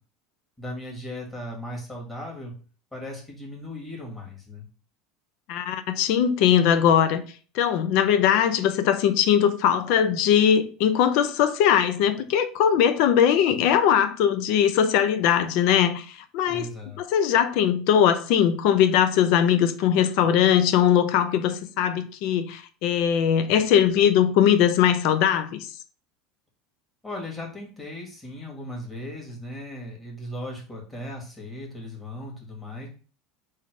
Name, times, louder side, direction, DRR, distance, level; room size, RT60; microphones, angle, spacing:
voice 1, 0.6-2.5 2.9-4.7 16.5-17.0 27.0-32.9, left 1 dB, 10° left, 1.8 m, -37 dB
voice 2, 5.5-7.2 7.5-16.1 16.3-16.7 17.0-25.7, left 9 dB, 65° left, 0.6 m, -20 dB
3.7 x 2.8 x 4.7 m
supercardioid pair, 130°, 0 cm